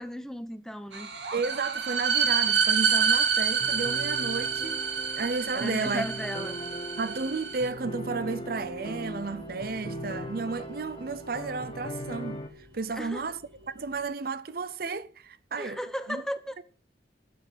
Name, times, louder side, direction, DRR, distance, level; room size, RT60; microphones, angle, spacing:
voice 1, 0.0-1.1 5.5-6.6 12.9-13.3 15.6-16.6, equal, 5° left, 0.9 m, -35 dB
sound 1, 0.9-7.7, right 6 dB, 70° right, 2.2 m, -28 dB
voice 2, 1.3-4.8 5.2-6.1 7.0-13.4 13.7-15.8 16.1-16.2 16.6-16.7, right 4 dB, 50° right, 0.6 m, -32 dB
sound 2, 2.1-14.1, left 2 dB, 90° right, 5.8 m, -53 dB
sound 3, 3.6-12.5, equal, 30° left, 1.3 m, -39 dB
12.0 x 7.4 x 7.7 m
head